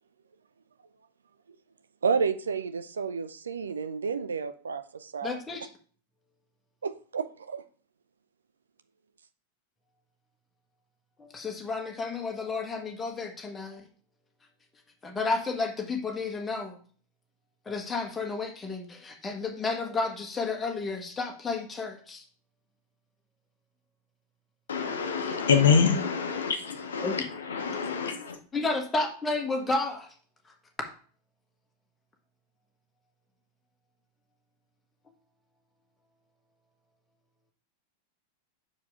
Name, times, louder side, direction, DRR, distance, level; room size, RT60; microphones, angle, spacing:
voice 1, 2.0-5.4 6.8-7.6, right 5 dB, 70° right, 0.5 m, -31 dB
voice 2, 5.2-5.7 11.2-13.8 15.0-16.8 17.6-22.2 27.0-27.2 28.5-30.1 30.4-30.5, left 3 dB, 15° left, 1.3 m, -32 dB
voice 3, 24.7-28.4, left 6 dB, 65° left, 0.8 m, -26 dB
6.4 x 4.7 x 3.6 m
figure-of-eight pair, 90°, 0 cm